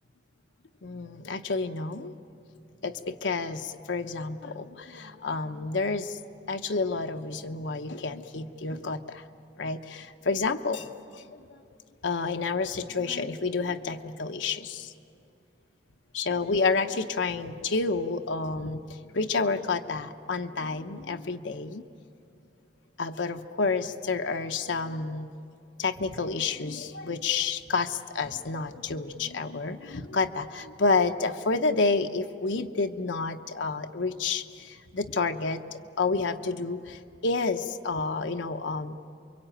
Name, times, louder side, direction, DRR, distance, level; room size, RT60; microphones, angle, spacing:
voice 1, 0.8-2.1 2.8-6.2 6.5-9.2 9.6-11.6 12.0-14.9 16.1-18.8 19.1-21.8 23.0-25.3 25.8-35.6 36.0-38.9, left 4 dB, 75° left, 5 dB, 0.8 m, -29 dB
28.0 x 23.5 x 9.0 m, 2.6 s
head